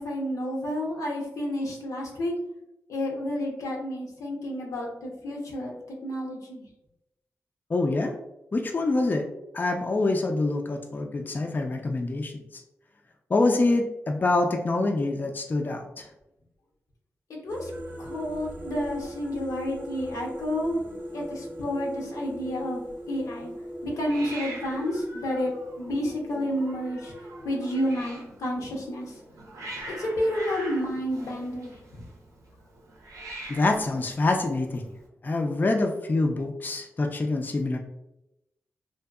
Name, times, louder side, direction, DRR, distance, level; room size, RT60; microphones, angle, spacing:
voice 1, 0.0-2.3 2.9-5.8 6.0-6.7 17.3-17.7 18.0-20.8 21.1-23.5 23.8-27.1 27.4-29.1 30.0-32.0, equal, 90° left, -1 dB, 0.6 m, -30 dB
voice 2, 7.7-8.1 8.5-9.2 9.5-12.3 13.3-16.1 33.5-34.8 35.2-37.8, left 2 dB, 35° left, 3 dB, 0.3 m, -25 dB
sound 1, 17.5-28.0, equal, 35° right, 0.4 m, -40 dB
Hiss, 17.7-35.1, right 2 dB, 90° right, 0.5 m, -45 dB
2.6 x 2.2 x 2.2 m, 0.89 s
cardioid pair, 60°, 5 cm